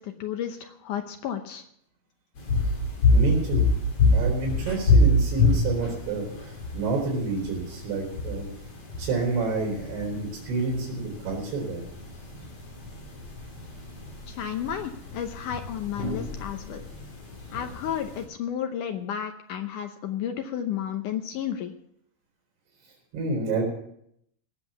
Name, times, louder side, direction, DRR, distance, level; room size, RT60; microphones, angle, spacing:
voice 1, 0.0-1.6 14.3-16.8 17.5-21.7, left 9 dB, 75° left, 6 dB, 1.9 m, -32 dB
sound 1, 2.4-18.2, left 2 dB, 40° left, 3.7 m, -26 dB
voice 2, 3.0-3.7 4.1-8.5 9.0-11.8 23.1-23.6, right 3 dB, 85° right, -3 dB, 5.8 m, -29 dB
17.5 x 7.5 x 7.0 m, 0.71 s
omnidirectional pair, 4.6 m